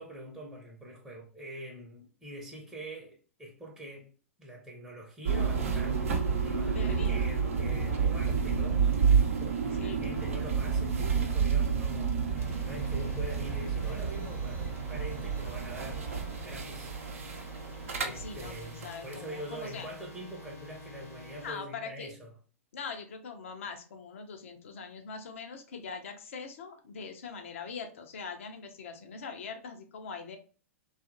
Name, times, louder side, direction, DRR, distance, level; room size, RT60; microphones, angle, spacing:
voice 1, 0.0-4.1 4.4-6.0 6.4-8.9 9.4-17.6 18.0-22.3, equal, 5° right, 0.7 m, -44 dB
sound 1, 5.2-19.2, right 6 dB, 70° right, 0.6 m, -30 dB
voice 2, 6.7-7.3 9.8-10.3 18.1-19.9 21.4-22.1 22.7-30.4, left 5 dB, 65° left, 0.6 m, -42 dB
sound 2, 12.3-21.5, left 2 dB, 85° left, 1.0 m, -48 dB
2.7 x 2.4 x 2.5 m
figure-of-eight pair, 100°, 8 cm